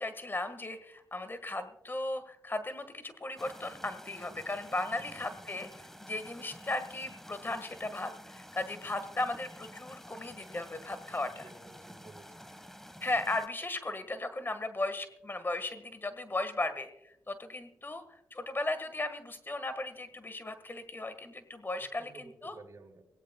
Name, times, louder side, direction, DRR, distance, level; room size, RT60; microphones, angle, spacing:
voice 1, 0.0-11.5 13.0-22.5, left 2 dB, 30° left, 11 dB, 1.7 m, -36 dB
sound 1, 3.4-13.5, equal, 5° left, 1.5 m, -50 dB
voice 2, 5.1-5.4 11.2-12.5 21.8-23.0, right 3 dB, 50° right, 2 dB, 3.9 m, -54 dB
24.5 x 17.0 x 2.3 m, 0.85 s
supercardioid pair, 45°, 7 cm